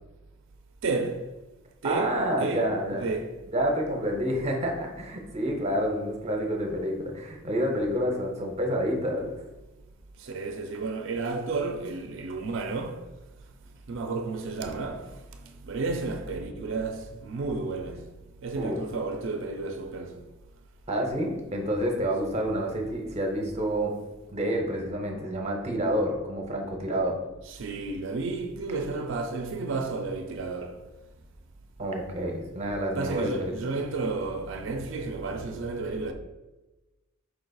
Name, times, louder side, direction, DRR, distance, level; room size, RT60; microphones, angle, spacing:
voice 1, 0.8-1.3 1.8-3.4 10.2-13.1 13.9-18.1 18.4-20.3 27.5-30.9 32.9-36.1, right 3 dB, 65° right, 0.4 m, -32 dB
voice 2, 1.8-3.1 3.5-9.3 18.6-18.8 20.9-23.9 24.3-27.2 31.8-33.5, equal, 30° right, 0.7 m, -28 dB
4.6 x 3.9 x 2.3 m
head